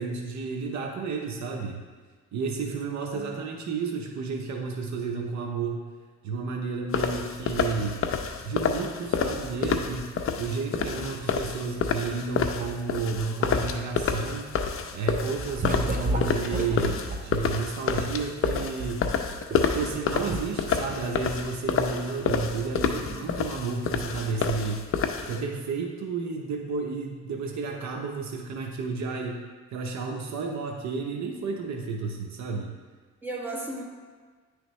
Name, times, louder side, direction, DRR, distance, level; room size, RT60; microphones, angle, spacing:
voice 1, 0.0-1.8 2.3-5.8 6.2-8.0 8.4-14.5 14.9-19.0 19.7-24.8 25.3-29.4 29.7-32.8, right 4 dB, 65° right, 2 dB, 0.8 m, -32 dB
sound 1, 6.9-25.4, left 6 dB, 45° left, 0.6 m, -29 dB
sound 2, 15.2-17.2 18.0-20.0 20.3-20.4, right 1 dB, 30° right, 0.7 m, -31 dB
voice 2, 22.8-23.2 33.2-33.8, right 2 dB, 5° right, -3 dB, 1.4 m, -36 dB
9.8 x 3.3 x 3.1 m, 1.5 s
cardioid pair, 90°, 30 cm